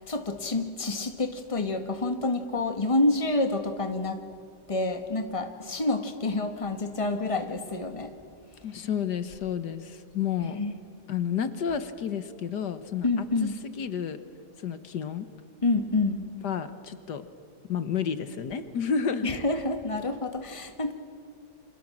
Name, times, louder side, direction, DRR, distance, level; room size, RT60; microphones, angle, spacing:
voice 1, 0.0-4.2 4.7-8.1 10.4-10.7 13.0-13.6 15.6-16.3 19.2-20.9, left 2 dB, 20° left, 7 dB, 1.7 m, -28 dB
voice 2, 8.6-10.6 11.1-13.3 13.8-14.2 14.6-15.3 16.4-17.3 17.7-19.3, left 7 dB, 75° left, 11 dB, 1.8 m, -31 dB
28.5 x 26.0 x 7.5 m, 2.2 s
omnidirectional pair, 1.8 m